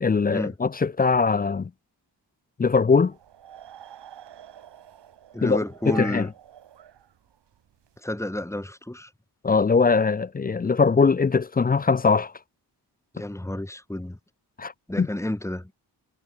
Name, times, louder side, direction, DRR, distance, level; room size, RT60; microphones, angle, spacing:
voice 1, 0.0-1.7 2.6-3.1 5.4-5.6 5.9-6.3 9.4-12.3 14.6-14.7 15.0-15.1, left 4 dB, 20° left, 0.4 m, -21 dB
sound 1, 3.1-8.0, right 10 dB, 70° right, 1.5 m, -46 dB
voice 2, 5.3-6.3 8.0-9.1 13.1-14.2 14.9-15.7, left 1 dB, 5° left, 2.2 m, -31 dB
wide cardioid pair, 140°, 43 cm